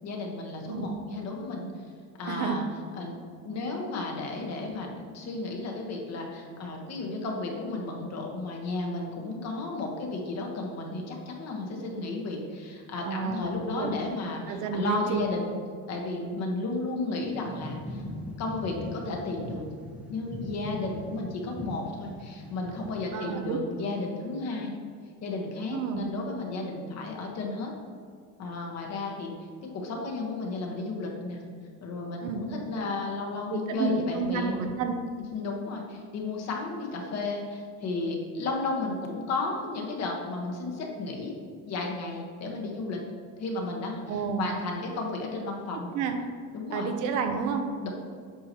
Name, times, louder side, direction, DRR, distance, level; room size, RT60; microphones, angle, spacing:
voice 1, 0.0-1.7 2.2-2.6 2.9-3.2 3.4-15.5 15.9-18.0 18.4-19.7 20.1-24.7 25.2-27.7 28.4-29.3 29.6-31.4 31.8-34.5 35.3-41.3 41.7-43.0 43.4-45.9 46.5-46.9 47.8-47.9, left 3 dB, 45° left, 0 dB, 1.4 m, -33 dB
voice 2, 2.3-2.6 13.0-13.9 14.5-15.2 23.1-23.6 25.7-26.1 32.2-32.4 33.5-35.0 44.1-44.5 45.9-46.2 46.7-47.7, right 6 dB, 55° right, 5 dB, 0.8 m, -30 dB
sound 1, 17.2-23.1, left 1 dB, 5° right, 0.8 m, -41 dB
8.6 x 5.7 x 3.0 m, 2.1 s
cardioid pair, 150°, 36 cm